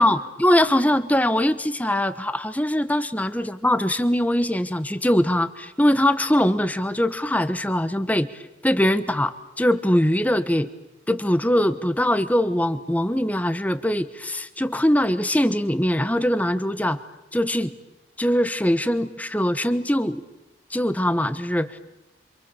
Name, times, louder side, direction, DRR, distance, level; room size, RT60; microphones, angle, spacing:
voice 1, 0.0-10.7 11.1-17.7 18.2-20.2 20.7-21.8, left 1 dB, 10° left, 13 dB, 1.1 m, -22 dB
27.5 x 27.0 x 7.1 m, 0.98 s
head